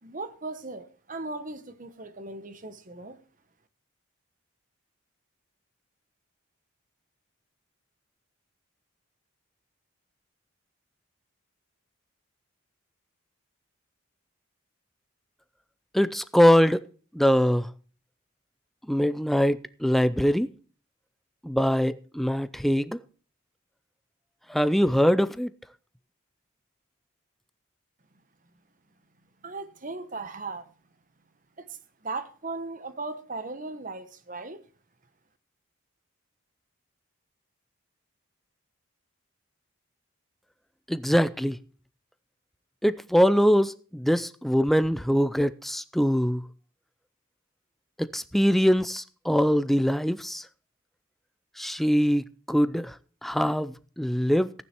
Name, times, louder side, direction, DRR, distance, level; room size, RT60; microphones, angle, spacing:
voice 1, 0.0-3.2 29.4-30.7 31.6-31.8 32.0-34.6, right 3 dB, 35° right, 1.1 m, -37 dB
voice 2, 15.9-16.8 17.1-17.7 18.9-20.5 21.4-23.0 24.5-25.5 40.9-41.6 42.8-46.4 48.0-50.4 51.6-52.9 53.2-54.5, equal, ahead, 0.4 m, -23 dB
15.0 x 9.5 x 4.5 m
head